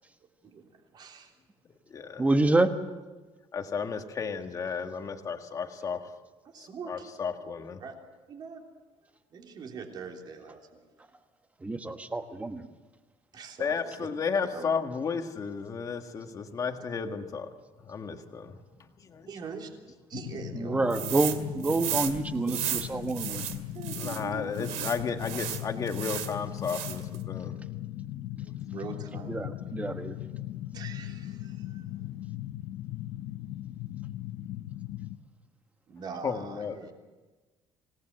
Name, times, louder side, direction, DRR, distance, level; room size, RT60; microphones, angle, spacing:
voice 1, 0.9-1.3 6.5-6.9 7.8-7.9 8.3-8.6 9.3-10.8 13.3-14.1 14.4-14.7 19.3-19.7 20.1-20.7 23.7-24.9 28.7-29.3 30.7-31.9 35.9-36.9, right 5 dB, 40° right, 2 dB, 3.4 m, -42 dB
voice 2, 1.7-2.3 3.5-6.1 6.6-7.8 13.6-17.5 17.8-19.3 24.0-27.8 28.0-28.6 36.2-36.9, left 5 dB, 30° left, 6 dB, 1.7 m, -34 dB
voice 3, 2.2-2.7 11.6-12.7 20.5-23.6 29.3-30.2, right 2 dB, 15° right, 7 dB, 1.4 m, -27 dB
sound 1, 20.1-35.2, left 14 dB, 85° left, 1.1 m, -38 dB
sound 2, 20.9-21.4 21.6-24.2 24.6-26.3 26.6-27.2, right 11 dB, 85° right, 2.3 m, -34 dB
26.5 x 18.5 x 7.8 m, 1.3 s
cardioid pair, 165°, 11 cm